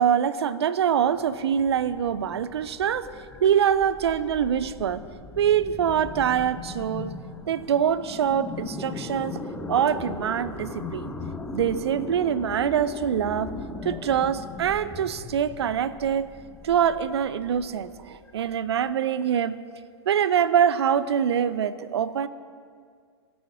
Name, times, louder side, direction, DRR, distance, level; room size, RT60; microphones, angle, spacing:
voice 1, 0.0-3.1 3.4-5.0 5.4-7.1 7.5-9.4 9.7-11.1 11.5-13.5 13.8-16.3 16.6-19.6 20.1-22.3, right 8 dB, 65° right, 16 dB, 0.8 m, -24 dB
sound 1, 1.1-18.9, left 3 dB, 10° left, 1.1 m, -39 dB
26.0 x 9.6 x 4.8 m, 2.1 s
figure-of-eight pair, 100°, 15 cm